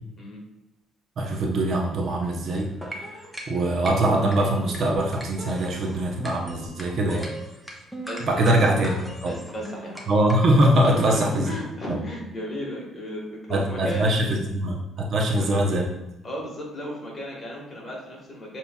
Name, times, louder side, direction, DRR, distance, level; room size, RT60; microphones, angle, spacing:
voice 1, 1.2-7.3 8.2-8.9 9.2-9.3 10.1-11.5 11.9-12.0 13.5-15.8, right 1 dB, 50° right, 0 dB, 0.7 m, -23 dB
sound 1, 2.6-10.7, right 1 dB, 5° right, 0.7 m, -39 dB
voice 2, 8.0-8.8 9.2-10.0 10.8-14.1 15.2-15.5 16.2-18.6, equal, 30° left, -3 dB, 1.4 m, -34 dB
6.8 x 2.9 x 2.3 m, 0.95 s
cardioid pair, 115°, 0 cm